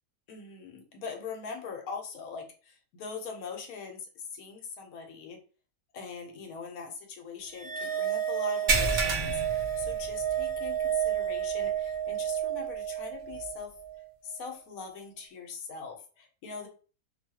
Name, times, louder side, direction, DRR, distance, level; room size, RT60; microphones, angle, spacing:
voice 1, 0.3-5.4 5.9-13.7 14.2-16.7, left 5 dB, 70° left, 3 dB, 1.0 m, -41 dB
sound 1, 7.5-14.1, right 10 dB, 65° right, 1.3 m, -31 dB
sound 2, 8.7-10.6 10.9-11.1 11.6-11.7 13.4-13.5, right 3 dB, 85° right, 0.4 m, -29 dB
2.8 x 2.2 x 2.7 m, 0.38 s
omnidirectional pair, 1.6 m